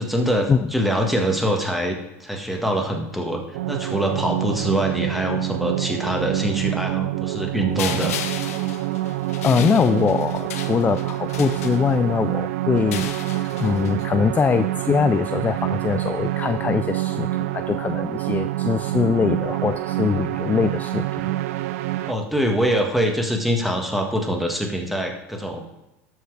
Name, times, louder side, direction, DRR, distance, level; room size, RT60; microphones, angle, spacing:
voice 1, 0.0-8.2 22.1-25.6, equal, ahead, 2 dB, 1.7 m, -24 dB
sound 1, 3.5-22.1, right 15 dB, 70° right, 0.5 m, -26 dB
sound 2, 7.8-12.2 12.8-14.1, left 9 dB, 80° left, 0.9 m, -34 dB
voice 2, 9.4-21.3, left 6 dB, 20° left, 11 dB, 0.4 m, -22 dB
13.0 x 4.7 x 4.8 m, 0.96 s
hypercardioid pair, 90°, 8 cm